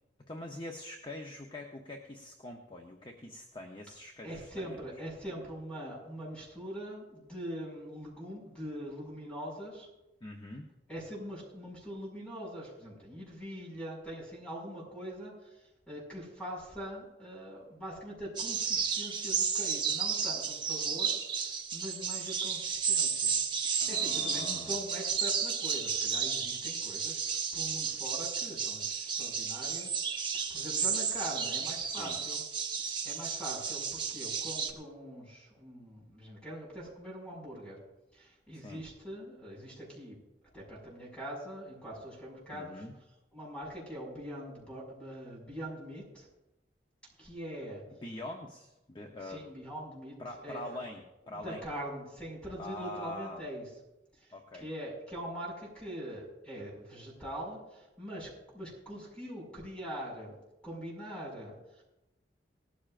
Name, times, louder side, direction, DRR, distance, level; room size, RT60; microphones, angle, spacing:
voice 1, 0.3-4.8 10.2-10.7 23.8-24.8 31.8-32.2 38.5-38.8 42.5-42.9 48.0-49.4 50.2-51.6 52.6-53.4 54.3-54.7, left 1 dB, 25° left, 2 dB, 0.8 m, -44 dB
voice 2, 4.2-9.9 10.9-21.1 21.4-23.4 23.6-30.0 30.3-32.4 33.0-37.8 38.1-40.2 40.5-42.8 43.3-46.3 47.2-47.8 49.2-50.2 50.4-50.8 51.3-53.6 54.1-54.3 54.6-60.4 60.6-61.8, equal, 5° left, -3 dB, 5.6 m, -43 dB
sound 1, 18.4-34.7, right 6 dB, 25° right, 1.0 m, -32 dB
19.0 x 13.5 x 2.5 m, 0.98 s
head